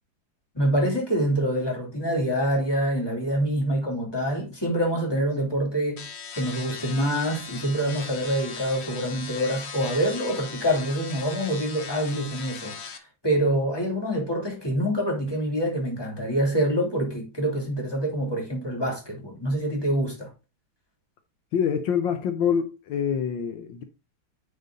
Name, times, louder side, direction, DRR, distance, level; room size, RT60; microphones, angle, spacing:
voice 1, 0.5-6.0 6.3-20.3, equal, 10° left, 3.0 m, -26 dB
sound 1, 6.0-13.0, left 5 dB, 45° left, 0.9 m, -38 dB
voice 2, 21.5-23.8, left 7 dB, 75° left, 1.5 m, -25 dB
9.5 x 4.6 x 3.9 m
omnidirectional pair, 2.1 m